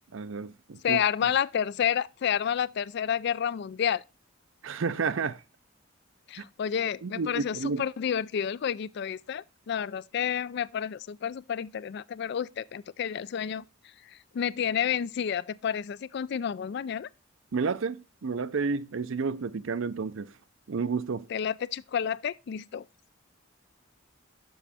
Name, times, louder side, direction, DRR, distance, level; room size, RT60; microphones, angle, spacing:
voice 1, 0.1-1.3 4.6-5.4 6.4-6.5 7.0-7.8 17.5-20.3 20.7-21.3, right 4 dB, 65° right, 0.5 m, -31 dB
voice 2, 0.8-4.0 6.3-13.6 14.3-17.1 21.3-22.8, left 8 dB, 50° left, 0.3 m, -30 dB
7.1 x 6.0 x 4.2 m
head